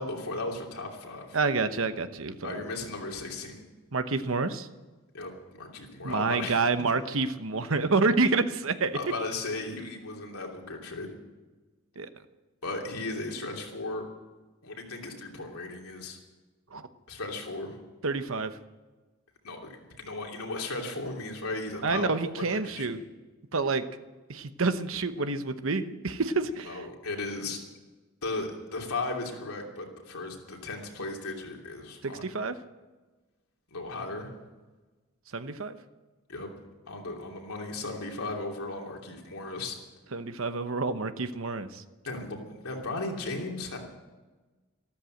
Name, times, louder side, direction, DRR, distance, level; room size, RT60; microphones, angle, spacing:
voice 1, 0.0-1.4 2.4-3.6 5.1-5.3 5.6-6.6 8.9-11.1 12.6-14.1 14.6-16.2 17.1-17.8 19.4-23.0 26.7-27.6 28.2-32.3 33.7-34.3 36.3-36.5 36.9-39.8 42.0-43.8, left 2 dB, 90° left, 1 dB, 3.0 m, -36 dB
voice 2, 1.3-2.6 3.9-4.7 6.0-9.0 12.0-12.1 16.7-16.9 18.0-18.5 21.8-23.0 23.5-23.8 24.3-26.8 32.0-32.5 35.3-35.8 40.1-41.8, right 3 dB, 70° right, 10 dB, 1.0 m, -28 dB
13.5 x 13.0 x 7.8 m, 1.2 s
head